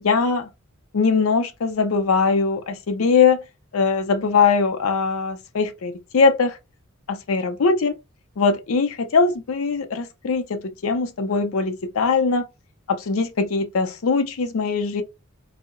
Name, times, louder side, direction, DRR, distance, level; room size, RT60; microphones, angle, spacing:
voice 1, 0.0-0.5 0.9-3.4 3.7-6.6 7.1-8.0 8.4-12.4 12.9-15.0, left 4 dB, 75° left, 0.5 m, -21 dB
2.7 x 2.0 x 2.5 m
head